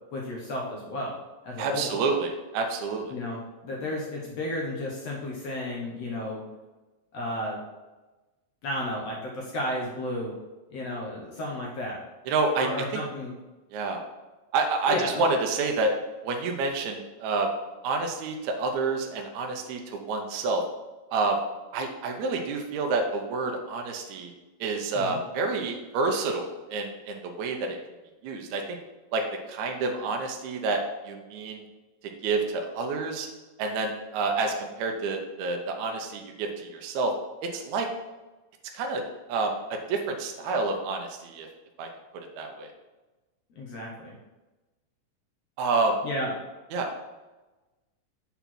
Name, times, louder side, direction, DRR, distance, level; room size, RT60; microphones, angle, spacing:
voice 1, 0.1-1.2 1.4-1.9 3.1-6.4 7.1-7.6 8.6-10.3 10.7-12.0 12.6-13.3 14.9-15.2 24.9-25.2 43.6-44.1 46.0-46.3, left 1 dB, 65° left, -2 dB, 1.6 m, -33 dB
voice 2, 1.6-3.1 12.3-13.0 13.7-14.0 14.5-15.9 16.2-17.6 17.8-20.6 21.1-21.5 21.7-24.3 24.6-27.8 28.2-28.8 29.1-31.6 32.2-33.3 33.6-37.1 37.4-37.9 38.7-39.0 39.3-41.5 41.8-42.7 45.6-46.0 46.7-46.9, right 3 dB, 75° right, 2 dB, 1.7 m, -28 dB
6.8 x 4.4 x 5.9 m, 1.1 s
omnidirectional pair, 4.2 m